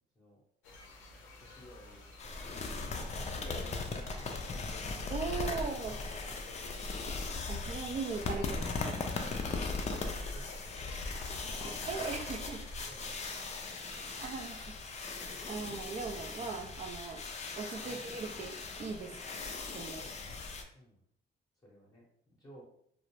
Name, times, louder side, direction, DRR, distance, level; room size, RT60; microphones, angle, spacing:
sound 1, 0.6-13.5, left 3 dB, 85° left, 0.5 m, -53 dB
voice 1, 1.4-6.0 10.3-11.5 12.1-13.7 17.6-18.2 19.0-19.2 19.7-20.4 20.7-21.0 21.6-22.6, left 1 dB, 20° left, -5 dB, 0.8 m, -55 dB
sound 2, 2.2-20.6, left 3 dB, 35° left, 0.4 m, -39 dB
voice 2, 5.1-6.0 7.5-9.0 11.6-12.6 13.9-14.8 15.5-17.2 17.6-19.2 19.7-20.0, right 4 dB, 35° right, 4 dB, 0.4 m, -39 dB
2.4 x 2.0 x 3.0 m, 0.69 s
cardioid pair, 90°, 20 cm